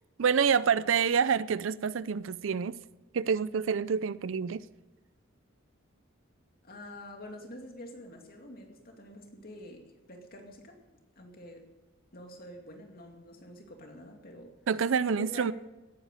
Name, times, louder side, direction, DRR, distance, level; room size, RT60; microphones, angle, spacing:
voice 1, 0.2-2.8 3.1-4.6 14.7-15.5, right 6 dB, 65° right, 0.4 m, -27 dB
voice 2, 6.6-10.8 11.2-11.6 12.1-14.5 15.1-15.5, left 1 dB, 45° left, 2.5 m, -47 dB
17.5 x 9.7 x 6.7 m
head